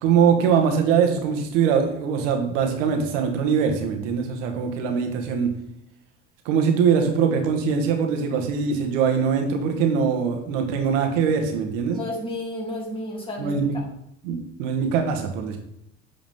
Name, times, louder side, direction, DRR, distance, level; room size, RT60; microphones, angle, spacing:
voice 1, 0.0-5.5 6.4-12.0 13.4-13.8 14.2-15.6, right 6 dB, 80° right, 4 dB, 1.5 m, -22 dB
voice 2, 11.9-13.8, left 1 dB, 15° left, -3 dB, 2.8 m, -32 dB
7.8 x 5.0 x 3.6 m, 0.77 s
hypercardioid pair, 80°, 37 cm